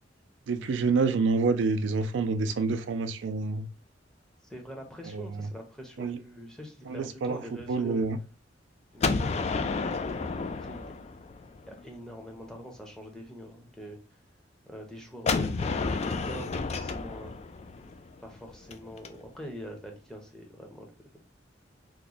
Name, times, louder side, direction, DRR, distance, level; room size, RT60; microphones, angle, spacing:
voice 1, 0.5-3.7 5.1-5.5 6.0-6.2 6.9-7.4 7.7-8.2, right 4 dB, 75° right, 8 dB, 0.4 m, -27 dB
voice 2, 4.4-8.0 8.9-9.5 10.3-10.8 11.7-14.0 14.7-17.3 18.2-21.1, equal, 5° left, 2 dB, 0.6 m, -44 dB
Gunshot gunfire, 9.0-11.8 15.3-19.1, left 4 dB, 35° left, 0.3 m, -31 dB
3.0 x 2.1 x 3.8 m, 0.34 s
head